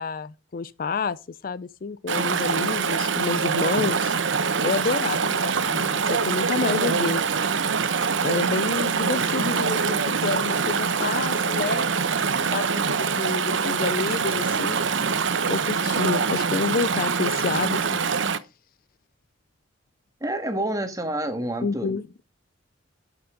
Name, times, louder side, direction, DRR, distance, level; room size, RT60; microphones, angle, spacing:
voice 1, 0.0-4.1 4.6-7.2 8.2-14.8 15.5-18.0 21.6-22.0, left 4 dB, 45° left, 0.4 m, -29 dB
Chatter / Stream, 2.1-18.4, right 5 dB, 70° right, 0.9 m, -24 dB
voice 2, 20.2-21.9, right 1 dB, 20° right, 1.7 m, -28 dB
11.5 x 7.0 x 3.8 m
head